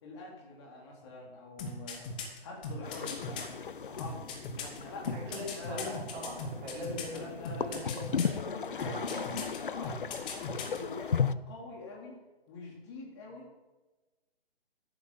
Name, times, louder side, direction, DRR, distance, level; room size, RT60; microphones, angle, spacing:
voice 1, 0.0-2.1 2.4-3.5 3.8-6.0 7.1-12.2 12.5-13.5, left 2 dB, 25° left, -1 dB, 3.3 m, -45 dB
sound 1, 1.6-3.4 4.0-7.2 7.4-8.4 8.8-9.6 9.8-10.8 11.1-11.2, left 5 dB, 10° left, 0.6 m, -39 dB
sound 2, 2.8-11.3, left 6 dB, 55° left, 0.6 m, -36 dB
voice 2, 5.1-7.3 7.6-8.1 8.7-9.3 10.5-10.7, equal, 15° right, -6 dB, 4.5 m, -41 dB
14.5 x 11.0 x 4.2 m, 1.1 s
figure-of-eight pair, 140°, 31 cm